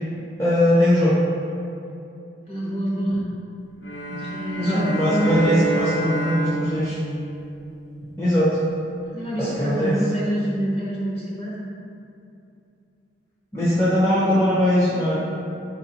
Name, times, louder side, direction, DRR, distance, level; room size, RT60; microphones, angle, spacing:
voice 1, 0.4-1.1 4.6-7.0 8.2-8.5 9.4-10.0 13.5-15.2, left 1 dB, 15° left, -11 dB, 0.6 m, -20 dB
voice 2, 2.4-3.2 4.0-5.6 9.1-11.6, equal, 35° left, -6 dB, 1.0 m, -26 dB
sound 1, 3.8-8.3, right 3 dB, 90° left, 0.5 m, -30 dB
4.5 x 3.9 x 2.8 m, 2.6 s
head